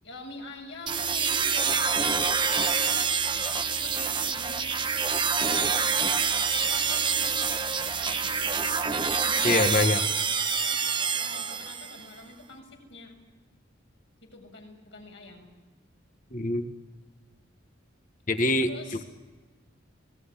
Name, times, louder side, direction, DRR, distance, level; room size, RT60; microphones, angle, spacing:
voice 1, 0.0-2.6 2.9-3.3 3.8-4.8 5.5-8.7 9.2-10.8 11.1-13.2 14.2-15.5 18.6-19.0, left 2 dB, 65° left, 2 dB, 7.0 m, -46 dB
sound 1, 0.9-12.0, right 5 dB, 25° right, 1.3 m, -26 dB
voice 2, 9.4-10.0 16.3-16.6 18.3-18.7, left 2 dB, 40° left, 8 dB, 1.5 m, -24 dB
24.0 x 18.5 x 10.0 m, 1.3 s
head